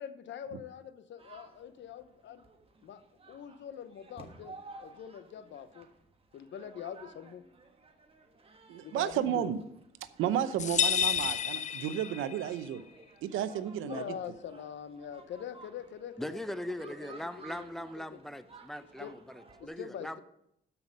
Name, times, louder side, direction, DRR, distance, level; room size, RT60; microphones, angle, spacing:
voice 1, 0.0-2.4 2.8-3.0 3.3-5.9 6.3-7.4 8.7-9.5 13.8-16.4 16.7-18.2 19.0-19.1 19.6-20.2, left 8 dB, 65° left, 11 dB, 0.9 m, -44 dB
sound 1, 1.2-19.7, right 3 dB, 30° right, 1.5 m, -55 dB
voice 2, 8.7-9.6 10.2-12.8 13.2-14.0, right 10 dB, 90° right, 13 dB, 0.7 m, -32 dB
sound 2, 10.6-12.5, left 8 dB, 35° left, 0.4 m, -30 dB
voice 3, 16.2-20.2, equal, ahead, 11 dB, 0.7 m, -40 dB
13.0 x 5.8 x 5.3 m, 0.77 s
cardioid pair, 90°, 20 cm